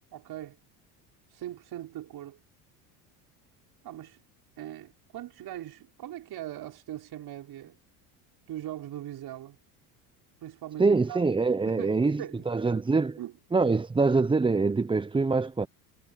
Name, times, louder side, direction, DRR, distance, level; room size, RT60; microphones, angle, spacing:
voice 1, 0.1-0.6 1.3-2.4 3.8-4.2 4.6-7.8 8.5-9.6 10.4-11.3 11.6-12.8 13.2-13.3, right 13 dB, 55° right, 6.1 m, -40 dB
voice 2, 10.8-13.2 13.5-15.7, right 4 dB, 10° right, 0.8 m, -24 dB
hypercardioid pair, 85°, 45 cm